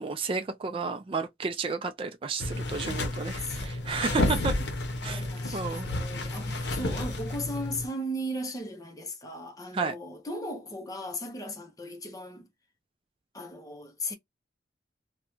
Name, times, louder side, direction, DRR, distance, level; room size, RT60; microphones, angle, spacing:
voice 1, 0.0-4.6 5.0-5.2 5.5-5.9 9.7-9.9, right 4 dB, 30° right, 0.3 m, -32 dB
sound 1, 2.4-7.9, left 1 dB, 75° left, 0.7 m, -31 dB
voice 2, 3.4-4.1 5.0-12.5 13.3-14.1, equal, 20° left, 0.6 m, -37 dB
2.4 x 2.1 x 2.9 m
head